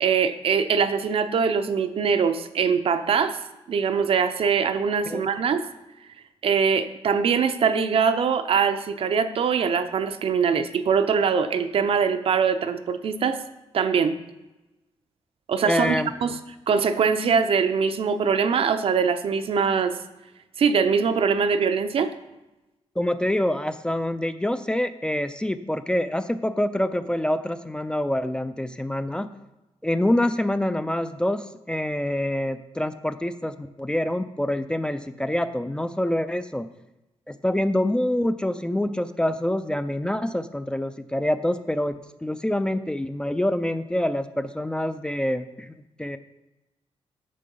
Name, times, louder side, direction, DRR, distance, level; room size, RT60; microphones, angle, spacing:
voice 1, 0.0-3.4 3.7-5.6 6.4-13.4 13.7-14.2 15.5-16.4 16.7-20.0 20.6-22.1, right 6 dB, 60° right, 10 dB, 0.6 m, -22 dB
voice 2, 15.6-16.1 23.0-29.3 29.8-36.7 37.3-41.9 42.2-46.2, left 1 dB, 10° left, 10 dB, 0.4 m, -26 dB
8.5 x 6.6 x 5.4 m, 1.0 s
wide cardioid pair, 135°, 11 cm